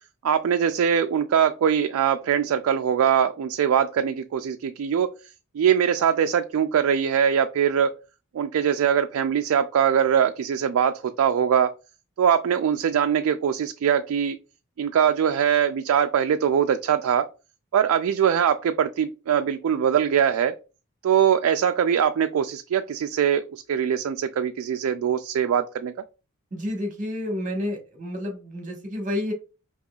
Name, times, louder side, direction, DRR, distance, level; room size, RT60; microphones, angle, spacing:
voice 1, 0.2-5.1 5.5-7.9 8.3-11.7 12.2-14.4 14.8-17.2 17.7-20.5 21.0-25.9, right 8 dB, 70° right, 7 dB, 0.3 m, -22 dB
voice 2, 26.5-29.3, left 1 dB, 35° right, 1 dB, 1.3 m, -30 dB
5.4 x 2.9 x 2.3 m, 0.32 s
head